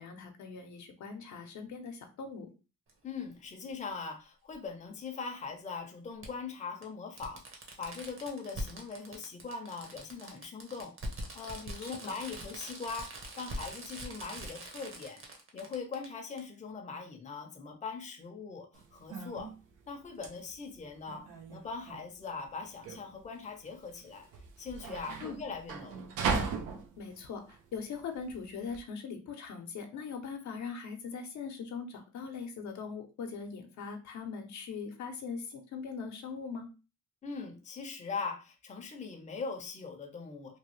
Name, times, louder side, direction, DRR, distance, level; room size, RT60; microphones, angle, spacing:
voice 1, 0.0-2.5 11.8-12.1 25.2-25.4 27.0-36.7, left 5 dB, 70° left, 4 dB, 0.7 m, -41 dB
Fireworks, 2.9-3.0 4.5-4.6 6.2-6.3 6.8-6.9 7.2-16.1 16.4-16.5, right 1 dB, 45° right, 1.0 m, -43 dB
voice 2, 3.0-15.2 15.5-19.5 19.9-24.3 24.6-26.1 37.2-40.6, left 4 dB, 25° left, 3 dB, 0.6 m, -41 dB
sound 1, 18.7-28.8, right 5 dB, 85° right, 0.6 m, -39 dB
3.0 x 2.2 x 3.1 m, 0.32 s
cardioid pair, 90°, 30 cm